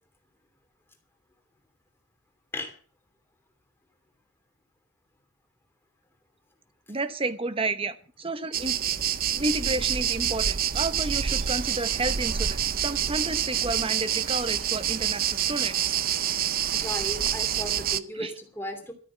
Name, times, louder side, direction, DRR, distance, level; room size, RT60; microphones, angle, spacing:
voice 1, 6.9-8.8 9.3-15.9 18.1-18.3, right 2 dB, 25° right, 12 dB, 1.1 m, -31 dB
sound 1, 8.5-18.0, right 9 dB, 45° right, 0.6 m, -27 dB
voice 2, 16.7-18.9, equal, 10° left, 4 dB, 3.0 m, -36 dB
13.5 x 8.6 x 7.2 m, 0.41 s
head